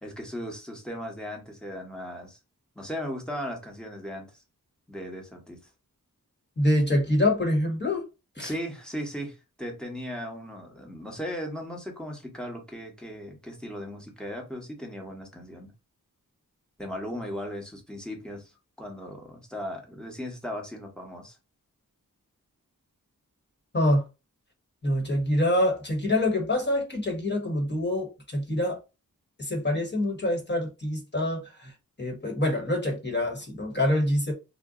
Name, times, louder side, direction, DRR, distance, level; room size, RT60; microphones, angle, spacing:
voice 1, 0.0-2.4 2.7-4.4 4.9-5.6 8.4-15.7 16.8-21.4, equal, ahead, 1.1 m, -37 dB
voice 2, 6.6-8.1 8.4-8.5 23.7-24.0 24.8-28.8 29.4-31.7 32.0-34.3, left 1 dB, 30° left, 1.2 m, -25 dB
2.6 x 2.2 x 3.7 m
wide cardioid pair, 60°, 34 cm